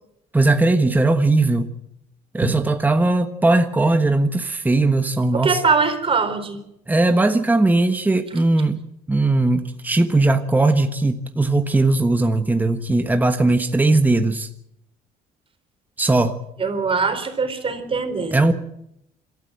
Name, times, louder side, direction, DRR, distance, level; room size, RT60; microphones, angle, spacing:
voice 1, 0.3-1.7 2.3-5.6 6.9-8.8 9.1-14.5 16.0-16.4 18.3-18.5, right 2 dB, 10° right, 7 dB, 1.3 m, -18 dB
voice 2, 5.3-6.6 16.6-18.4, right 5 dB, 35° right, 7 dB, 4.1 m, -22 dB
27.0 x 13.5 x 7.8 m, 0.78 s
cardioid pair, 110°, 17 cm